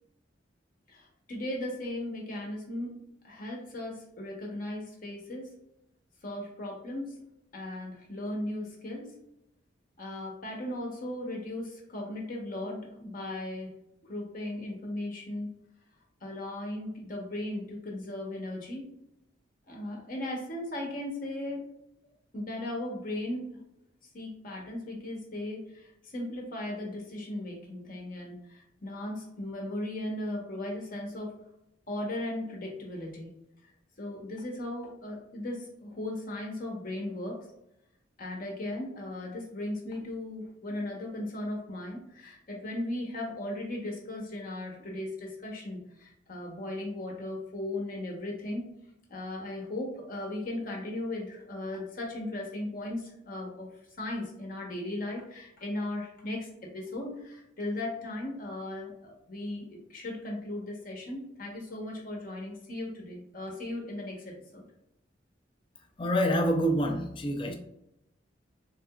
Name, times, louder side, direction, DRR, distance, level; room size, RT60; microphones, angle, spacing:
voice 1, 0.9-2.9 3.2-5.5 6.2-7.1 7.5-9.1 10.0-13.7 14.0-15.5 16.2-18.9 19.7-21.6 22.3-23.6 24.1-31.3 31.9-33.3 34.0-37.4 38.2-48.7 49.1-64.6, left 1 dB, 50° left, 0.9 m, -37 dB
voice 2, 66.0-67.5, equal, 25° left, 0.4 m, -26 dB
3.5 x 2.8 x 2.3 m
head